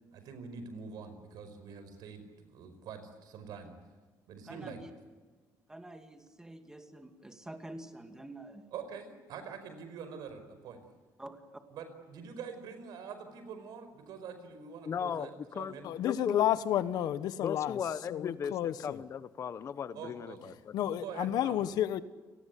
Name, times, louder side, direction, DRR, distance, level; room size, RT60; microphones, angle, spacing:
voice 1, 0.1-3.7 4.3-4.8 8.7-10.8 11.7-15.9 19.9-20.5 20.8-21.6, right 6 dB, 80° right, 5.1 m, -45 dB
voice 2, 4.5-4.9 5.7-8.7 11.2-11.6, right 1 dB, 10° right, 2.5 m, -47 dB
voice 3, 14.9-15.7 16.0-16.5 17.4-20.7, left 7 dB, 45° left, 0.9 m, -36 dB
voice 4, 15.8-17.8 18.1-19.0 20.7-22.0, left 11 dB, 75° left, 1.2 m, -31 dB
30.0 x 19.0 x 8.5 m
cardioid pair, 135°, 7 cm